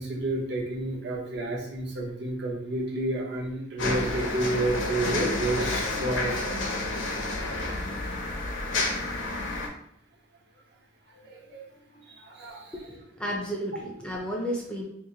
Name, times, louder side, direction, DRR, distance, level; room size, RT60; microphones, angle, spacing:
voice 1, 0.0-6.6 11.3-11.6 12.2-12.7, right 2 dB, 55° right, -2 dB, 0.8 m, -30 dB
sound 1, 3.8-9.7, left 2 dB, 65° left, 0.7 m, -30 dB
voice 2, 12.7-14.8, equal, 5° left, -2 dB, 0.5 m, -33 dB
2.9 x 2.5 x 3.8 m, 0.71 s
head